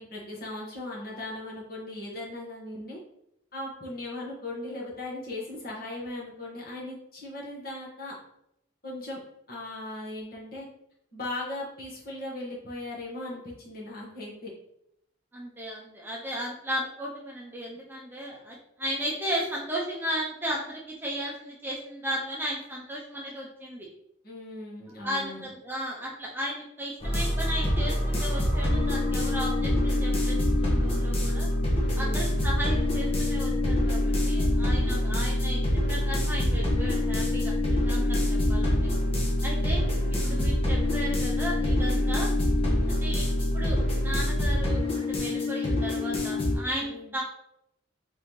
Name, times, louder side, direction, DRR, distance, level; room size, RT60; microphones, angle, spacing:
voice 1, 0.0-3.0 3.5-8.1 8.8-9.2 9.5-10.7 11.1-14.5 24.2-25.5 31.8-32.4 39.1-39.2 40.2-40.6 42.6-43.0 46.8-47.1, left 2 dB, 50° left, -4 dB, 1.4 m, -38 dB
voice 2, 15.3-23.9 25.0-31.5 32.0-35.6 35.9-37.5 37.9-38.8 39.4-42.3 42.9-47.2, equal, 10° right, -3 dB, 0.6 m, -35 dB
sound 1, 27.0-46.6, left 1 dB, 30° left, 1.1 m, -25 dB
4.1 x 3.6 x 3.1 m, 0.78 s
head